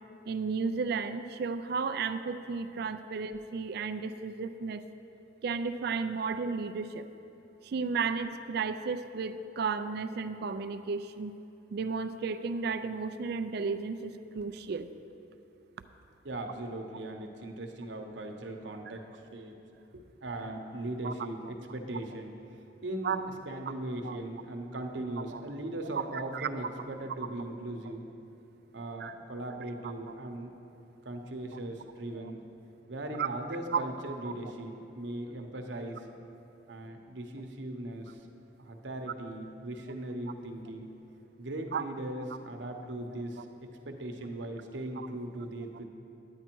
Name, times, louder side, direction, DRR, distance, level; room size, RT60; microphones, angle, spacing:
voice 1, 0.3-4.8 5.4-7.1 7.6-11.4 11.7-14.9 21.0-21.1 23.0-23.3 24.0-24.2 25.2-25.4 26.0-26.5 29.0-29.1 29.8-29.9 33.2-33.3 33.7-33.8 41.7-41.8, right 5 dB, 60° right, 11 dB, 0.4 m, -33 dB
voice 2, 16.2-19.6 19.9-22.3 22.8-23.2 23.5-28.0 28.7-30.5 31.0-32.4 32.9-36.1 36.7-38.3 38.6-40.9 41.4-43.5 43.9-45.8, right 1 dB, 75° right, 3 dB, 0.9 m, -39 dB
10.0 x 9.4 x 4.5 m, 2.9 s
head